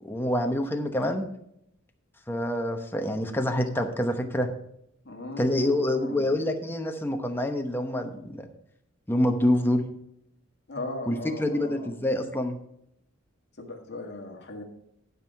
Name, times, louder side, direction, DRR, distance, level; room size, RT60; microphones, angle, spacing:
voice 1, 0.0-1.3 2.3-4.5 5.4-8.5 9.1-9.8 11.1-12.6, left 1 dB, 10° left, 4 dB, 0.9 m, -26 dB
voice 2, 5.1-6.3 10.7-11.9 13.6-14.6, left 2 dB, 55° left, 2 dB, 1.7 m, -38 dB
12.0 x 5.5 x 4.6 m, 0.76 s
head